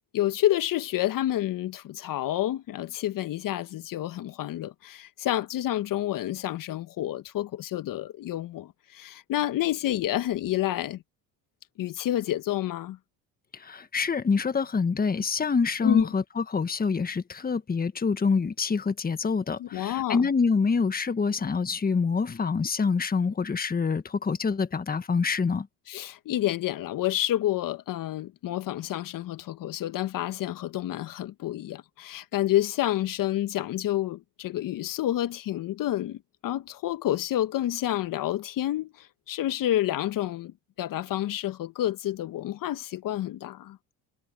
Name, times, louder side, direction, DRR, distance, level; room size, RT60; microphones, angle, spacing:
voice 1, 0.1-11.0 11.8-13.0 15.8-16.1 19.6-20.3 25.9-43.8, left 13 dB, 55° left, 1.4 m, -29 dB
voice 2, 13.5-25.7, left 5 dB, 20° left, 1.5 m, -26 dB
supercardioid pair, 80°, 39 cm